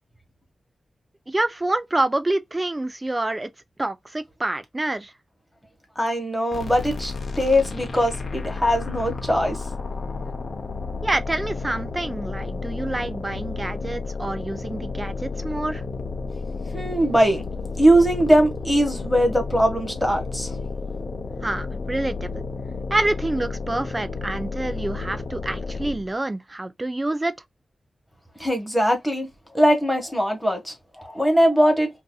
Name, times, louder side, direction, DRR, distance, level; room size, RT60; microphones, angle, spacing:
voice 1, 1.3-3.5 3.8-5.1 11.0-15.8 21.4-22.4 22.9-27.3, right 2 dB, 25° right, 0.5 m, -27 dB
voice 2, 6.0-9.6 16.7-17.4 17.8-20.5 28.4-29.3 29.5-31.9, equal, 5° left, 1.4 m, -21 dB
sound 1, 6.5-26.1, left 4 dB, 55° left, 0.7 m, -32 dB
3.9 x 2.7 x 2.3 m
wide cardioid pair, 85°, 0 cm